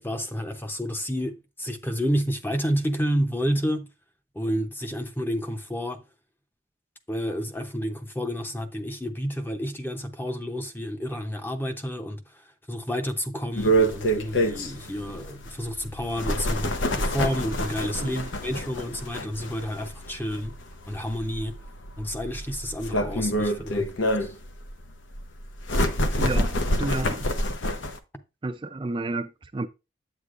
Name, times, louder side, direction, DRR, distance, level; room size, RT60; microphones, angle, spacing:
voice 1, 0.0-3.9 4.3-6.0 7.1-20.5 20.9-21.6 22.0-23.9 24.2-24.3, equal, 10° left, 0.7 m, -30 dB
sound 1, 13.6-28.0, equal, 90° left, 0.9 m, -27 dB
voice 2, 18.0-18.3 26.2-27.3 28.4-29.7, right 2 dB, 25° right, 0.4 m, -31 dB
8.3 x 8.1 x 2.5 m
head